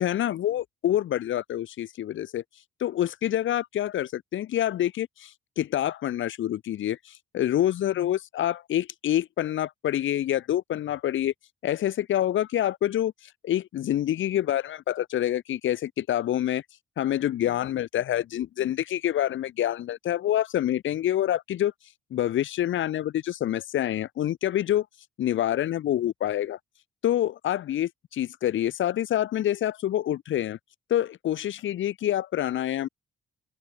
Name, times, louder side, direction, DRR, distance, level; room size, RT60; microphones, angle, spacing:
voice 1, 0.0-2.4 2.8-11.3 11.6-16.6 17.0-21.7 22.1-24.9 25.2-26.6 27.0-30.6 30.9-32.9, left 12 dB, 75° left, 7.7 m, -27 dB
cardioid pair, 90°, 20 cm